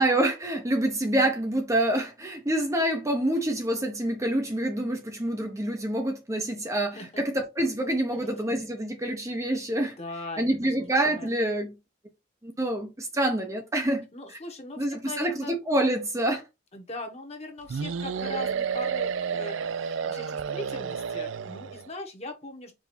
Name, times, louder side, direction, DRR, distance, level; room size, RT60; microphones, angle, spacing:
voice 1, 0.0-10.0 10.4-11.8 12.4-14.0 14.8-16.4, right 1 dB, 15° right, 0.7 m, -27 dB
voice 2, 10.0-11.3 14.1-15.5 16.7-22.7, left 2 dB, 30° left, 1.1 m, -40 dB
sound 1, 17.7-21.9, right 6 dB, 70° right, 0.4 m, -31 dB
4.8 x 2.6 x 4.1 m
head